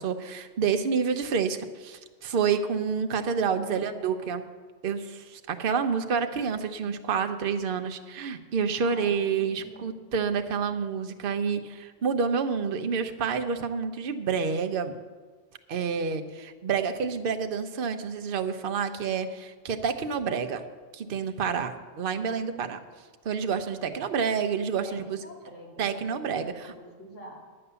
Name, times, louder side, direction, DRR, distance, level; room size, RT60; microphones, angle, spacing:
voice 1, 0.0-4.4 4.8-14.9 15.7-20.6 20.9-22.8 23.2-25.2 25.8-26.7, right 6 dB, 50° right, 7 dB, 0.9 m, -28 dB
voice 2, 3.5-4.3 8.8-9.9 24.8-26.0 26.6-27.4, right 1 dB, 70° left, -2 dB, 2.7 m, -46 dB
9.8 x 9.7 x 6.9 m, 1.5 s
omnidirectional pair, 1.3 m